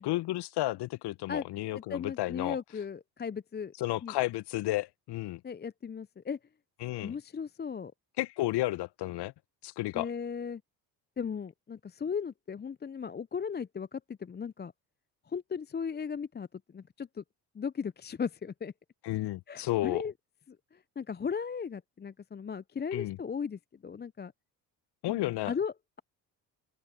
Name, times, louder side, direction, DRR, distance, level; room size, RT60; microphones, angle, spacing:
voice 1, 0.0-2.6 3.8-5.4 6.8-7.1 8.2-9.3 9.6-10.1 19.0-20.0 22.9-23.2 25.0-25.5, left 17 dB, 50° left, 1.2 m, -32 dB
voice 2, 1.7-3.7 4.0-4.1 5.4-6.4 7.0-7.9 9.9-10.6 11.2-14.7 15.3-16.5 16.7-17.2 17.5-18.7 19.5-20.1 20.5-24.3 25.1-25.7, left 6 dB, 20° left, 0.8 m, -37 dB
open air
figure-of-eight pair, 55°, 50 cm